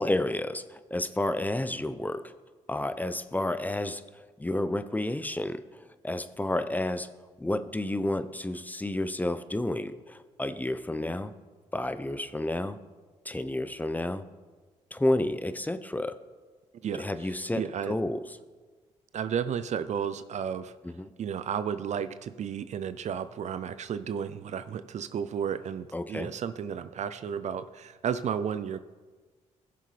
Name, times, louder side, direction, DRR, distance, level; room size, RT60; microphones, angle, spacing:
voice 1, 0.0-2.3 2.7-4.0 4.4-7.1 7.4-11.3 11.7-12.8 13.2-14.3 14.9-16.2 16.9-18.2 20.8-21.1 25.9-26.3, left 1 dB, 10° left, 11 dB, 0.7 m, -30 dB
voice 2, 17.5-18.0 19.1-20.8 21.2-28.8, right 8 dB, 60° right, 13 dB, 0.5 m, -33 dB
16.0 x 6.8 x 3.3 m, 1.4 s
supercardioid pair, 60°, 14 cm